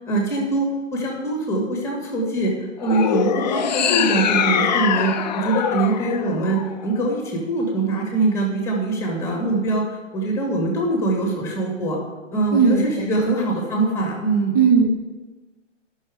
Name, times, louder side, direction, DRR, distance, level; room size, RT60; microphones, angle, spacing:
voice 1, 0.1-2.5 2.8-9.8 10.1-12.0 12.3-14.5, right 2 dB, 5° left, -1 dB, 2.3 m, -23 dB
sound 1, 2.8-7.2, left 8 dB, 35° left, 0.5 m, -23 dB
voice 2, 12.5-13.3 14.5-15.0, right 5 dB, 25° right, -1 dB, 0.9 m, -18 dB
12.0 x 6.4 x 4.9 m, 1.2 s
figure-of-eight pair, 135°, 38 cm